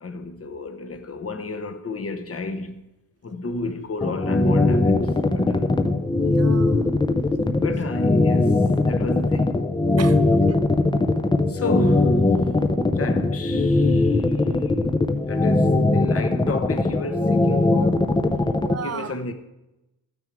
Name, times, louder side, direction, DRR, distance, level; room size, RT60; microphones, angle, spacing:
voice 1, 0.0-2.8 3.2-5.8 7.5-9.6 11.5-12.3 12.9-14.7 15.3-18.3 18.8-19.3, left 3 dB, 40° left, 0.9 m, -32 dB
sound 1, 4.0-18.7, left 2 dB, 15° left, 0.6 m, -20 dB
voice 2, 6.1-6.9 10.0-10.6 18.6-19.2, right 8 dB, 45° right, 0.6 m, -35 dB
13.5 x 9.5 x 4.7 m
wide cardioid pair, 165°, 35 cm